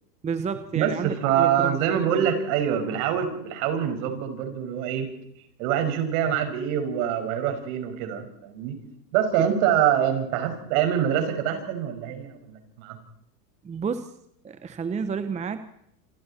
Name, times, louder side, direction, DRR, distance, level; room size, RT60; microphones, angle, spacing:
voice 1, 0.2-2.3 9.4-9.5 13.6-14.1 14.4-15.7, right 6 dB, 15° right, 11 dB, 1.0 m, -31 dB
voice 2, 0.7-5.1 5.6-8.8 9.1-13.0, right 9 dB, 55° right, 6 dB, 5.6 m, -25 dB
28.0 x 24.5 x 4.4 m, 0.74 s
hypercardioid pair, 120°, 48 cm